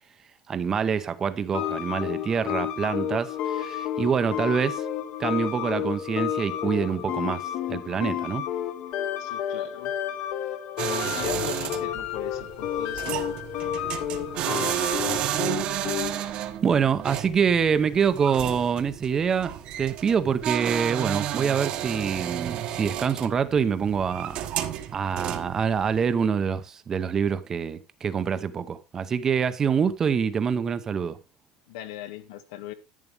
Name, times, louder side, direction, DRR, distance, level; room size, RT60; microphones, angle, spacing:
voice 1, 0.5-4.8 5.2-8.4 16.0-16.2 16.6-24.4 24.9-31.2, right 6 dB, 20° right, 0.8 m, -26 dB
sound 1, 1.5-16.3, left 10 dB, 45° left, 1.2 m, -31 dB
voice 2, 9.2-9.9 10.9-13.4 31.7-32.7, left 12 dB, 90° left, 1.5 m, -38 dB
sound 2, 10.8-26.1, right 11 dB, 45° right, 1.2 m, -32 dB
11.0 x 9.4 x 3.4 m
cardioid pair, 170°, 2 cm